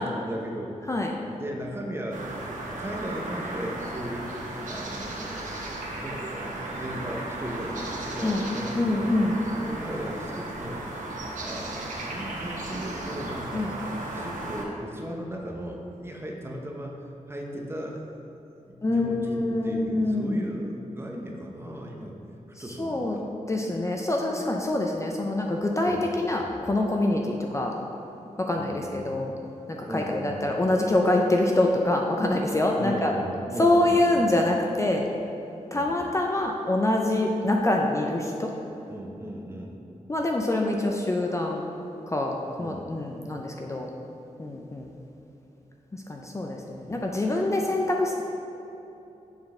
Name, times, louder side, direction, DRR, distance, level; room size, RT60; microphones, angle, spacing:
voice 1, 0.0-0.7 1.3-2.3 2.6-4.3 4.7-9.1 9.4-10.8 11.4-13.7 14.1-17.0 17.3-18.0 18.7-22.2 22.6-23.2 25.9-26.1 28.6-29.2 29.9-30.4 32.8-34.2 35.7-35.9 38.9-39.8 42.6-43.0 46.9-47.0, equal, 20° right, 0 dB, 0.7 m, -36 dB
sound 1, 2.1-14.6, right 2 dB, 85° right, 0.8 m, -35 dB
voice 2, 8.7-9.4 13.5-13.7 18.8-20.4 22.6-23.2 23.5-27.7 28.4-29.3 29.7-33.1 33.6-35.1 35.7-38.5 40.1-41.6 42.1-43.9 44.4-44.9 45.9-48.2, left 2 dB, 25° left, 0 dB, 0.4 m, -25 dB
7.1 x 3.8 x 3.7 m, 3.0 s
wide cardioid pair, 105°, 13 cm